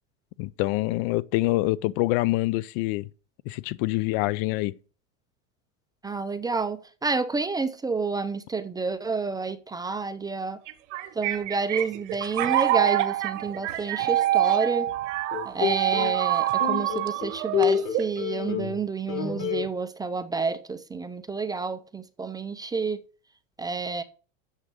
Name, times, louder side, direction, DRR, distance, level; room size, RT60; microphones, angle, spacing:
voice 1, 0.4-3.1 3.5-4.7, left 19 dB, 50° left, 0.5 m, -25 dB
voice 2, 6.0-10.6 11.1-14.9 15.4-23.0 23.6-24.0, right 4 dB, 10° right, 0.5 m, -29 dB
sound 1, 10.7-18.2, right 14 dB, 65° right, 1.1 m, -26 dB
sound 2, 15.3-16.2 16.6-18.8 19.1-19.7, left 9 dB, 65° left, 3.2 m, -28 dB
7.4 x 6.4 x 6.6 m
supercardioid pair, 125°, 39 cm